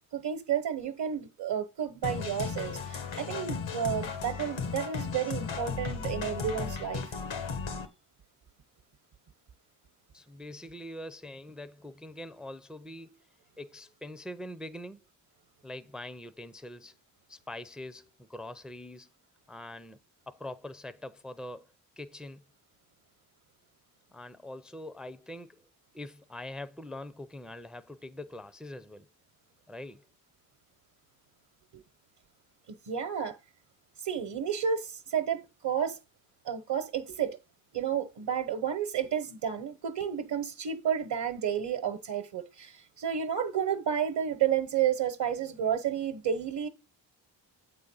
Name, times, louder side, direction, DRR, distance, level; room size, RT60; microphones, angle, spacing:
voice 1, 0.1-7.0 32.9-33.4 34.0-36.0 36.4-37.4 37.7-46.7, right 8 dB, 65° right, 1.0 m, -31 dB
sound 1, 2.0-7.9, left 5 dB, 80° left, 1.3 m, -35 dB
voice 2, 10.1-13.3 13.6-15.0 15.6-16.9 17.3-19.1 19.5-20.0 20.3-21.7 22.0-22.4 24.1-25.6 25.9-29.1 29.7-30.0, left 1 dB, ahead, 0.5 m, -43 dB
8.4 x 3.8 x 5.4 m
wide cardioid pair, 110°, 46 cm